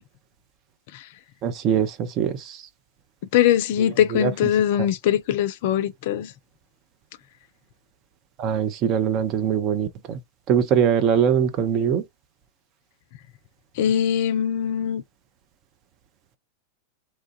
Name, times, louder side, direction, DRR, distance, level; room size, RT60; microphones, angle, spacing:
voice 1, 1.4-2.6 4.1-4.3 8.4-10.2 10.5-12.0, right 8 dB, 35° right, 0.5 m, -22 dB
voice 2, 3.3-6.3 13.8-15.0, left 10 dB, 50° left, 0.4 m, -21 dB
2.9 x 2.2 x 2.6 m
figure-of-eight pair, 90°, 0 cm